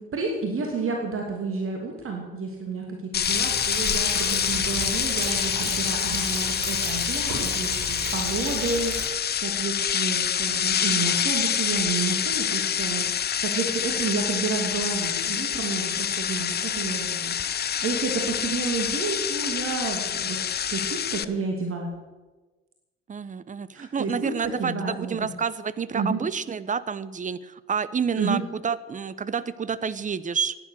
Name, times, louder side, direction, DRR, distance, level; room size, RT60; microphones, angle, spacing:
voice 1, 0.0-13.1 13.4-21.9 23.7-25.3 25.9-26.2 28.1-28.4, right 4 dB, 45° right, 2 dB, 2.7 m, -30 dB
sound 1, 3.1-21.2, left 8 dB, 35° left, 0.7 m, -27 dB
Thunder, 3.2-9.0, right 4 dB, 65° right, 6.1 m, -34 dB
voice 2, 23.1-30.6, right 6 dB, 25° right, 17 dB, 0.8 m, -29 dB
15.5 x 10.0 x 6.6 m, 1.2 s
hypercardioid pair, 55°, 30 cm